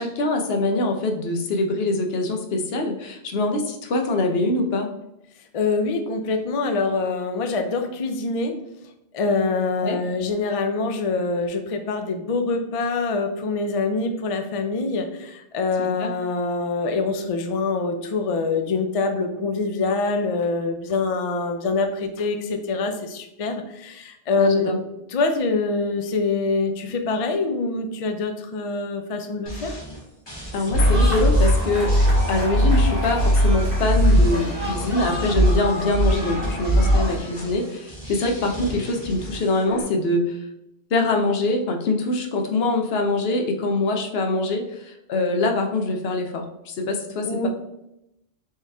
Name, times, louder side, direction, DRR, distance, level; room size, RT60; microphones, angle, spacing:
voice 1, 0.0-4.9 9.8-10.0 15.8-16.1 24.4-24.8 30.5-31.9 32.3-40.4 40.9-47.5, left 2 dB, 70° left, 3 dB, 0.9 m, -24 dB
voice 2, 5.5-8.5 9.1-24.7 25.1-29.7 47.2-47.5, left 3 dB, 50° left, 5 dB, 0.4 m, -25 dB
sound 1, 29.5-39.8, right 1 dB, 25° left, 1.5 m, -37 dB
sound 2, 30.7-37.2, equal, 50° right, 2.0 m, -20 dB
4.6 x 3.0 x 3.4 m, 0.86 s
omnidirectional pair, 1.1 m